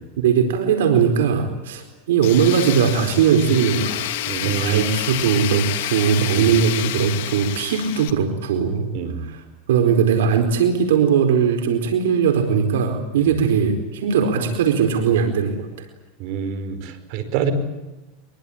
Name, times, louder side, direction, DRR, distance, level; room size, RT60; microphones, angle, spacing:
voice 1, 0.2-4.1 4.4-8.9 9.2-9.4 9.7-15.7, right 7 dB, 90° right, 6 dB, 4.5 m, -19 dB
Tools, 2.2-8.1, left 14 dB, 70° left, 2.4 m, -28 dB
voice 2, 4.3-4.9 6.4-6.5 8.9-9.2 13.2-13.3 16.2-17.5, right 8 dB, 55° right, 10 dB, 5.2 m, -26 dB
24.0 x 23.5 x 8.8 m, 1.0 s
supercardioid pair, 140°, 0 cm